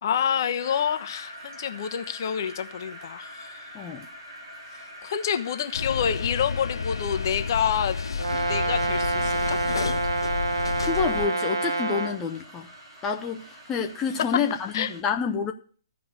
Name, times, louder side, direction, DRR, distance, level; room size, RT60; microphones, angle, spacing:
voice 1, 0.0-3.6 4.7-8.0 8.5-9.6 14.7-14.9, left 8 dB, 50° left, 1.1 m, -28 dB
sound 1, 0.6-15.0, equal, 50° right, 4.0 m, -45 dB
voice 2, 3.7-4.1 10.8-12.7 13.0-15.5, left 5 dB, 20° left, 0.9 m, -28 dB
sound 2, 5.7-11.3, left 5 dB, 70° left, 0.6 m, -31 dB
Brass instrument, 8.2-12.2, right 3 dB, 65° right, 1.1 m, -27 dB
14.0 x 5.0 x 8.2 m
figure-of-eight pair, 125°, 3 cm